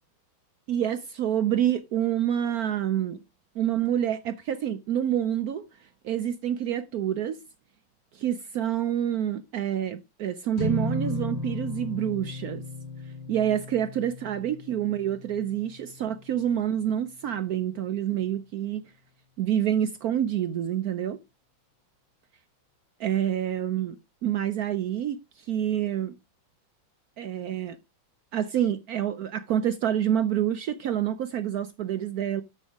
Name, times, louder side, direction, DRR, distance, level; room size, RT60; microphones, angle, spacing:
voice 1, 0.7-3.2 3.6-7.4 8.1-12.6 13.3-18.8 19.4-21.2 23.0-26.1 27.2-27.8 28.3-32.4, right 10 dB, 75° right, 0.8 m, -27 dB
sound 1, 10.6-17.0, left 1 dB, 65° left, 3.2 m, -35 dB
12.5 x 5.5 x 3.5 m
omnidirectional pair, 2.2 m